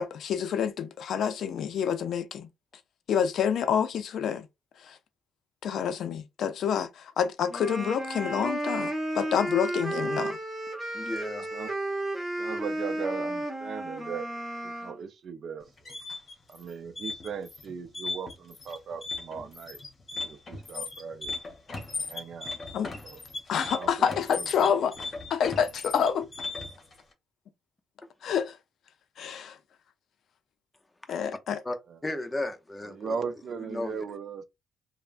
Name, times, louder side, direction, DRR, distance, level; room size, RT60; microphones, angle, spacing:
voice 1, 0.0-2.5 3.1-4.5 4.9-5.0 5.6-10.4 22.7-22.9 23.5-24.9 25.3-26.3 28.2-28.5 29.2-29.6 31.1-31.6, left 8 dB, 70° left, 0.4 m, -28 dB
sound 1, 7.5-15.0, right 1 dB, 10° right, 0.9 m, -33 dB
voice 2, 10.9-11.5 31.1-31.2 31.6-31.8 32.0-33.1 33.7-34.0, left 1 dB, 15° left, 0.6 m, -34 dB
voice 3, 12.4-14.3 14.6-16.0 16.5-19.8 20.2-21.3 22.0-22.6 23.0-23.2 23.7-24.8 31.9-32.0 32.8-34.4, right 6 dB, 60° right, 0.4 m, -38 dB
sound 2, 15.6-26.9, left 3 dB, 35° left, 1.0 m, -37 dB
3.2 x 2.0 x 2.4 m
cardioid pair, 90°, 0 cm